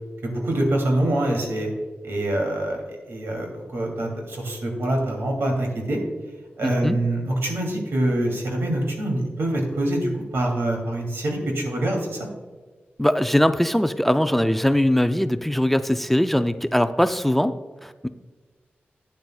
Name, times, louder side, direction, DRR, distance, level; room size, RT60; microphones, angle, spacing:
voice 1, 0.2-1.7 2.0-2.8 3.1-6.0 6.6-12.3, right 1 dB, 85° right, 1 dB, 2.7 m, -25 dB
voice 2, 6.6-7.0 13.0-17.6 17.8-18.1, left 1 dB, 5° left, 10 dB, 0.3 m, -21 dB
11.5 x 9.5 x 2.3 m, 1.4 s
wide cardioid pair, 135°, 4 cm